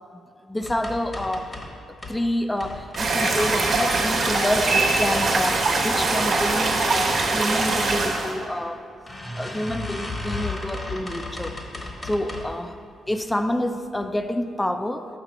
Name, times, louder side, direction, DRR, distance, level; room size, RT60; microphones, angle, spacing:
voice 1, 0.4-1.6 1.9-8.8 9.4-12.8 13.1-15.1, left 1 dB, 10° left, 8 dB, 0.5 m, -28 dB
sound 1, 0.6-2.2 2.6-4.2 4.7-5.3 5.7-6.1 6.4-6.5 6.8-6.9 7.9-8.0 8.4-8.5 9.1-12.6 13.1-13.5 14.0-14.1 14.4-14.5, left 2 dB, 30° left, 1.1 m, -35 dB
sound 2, 3.0-8.3, right 3 dB, 55° right, 1.1 m, -22 dB
5.5 x 5.2 x 6.0 m, 2.3 s
cardioid pair, 65°, 0 cm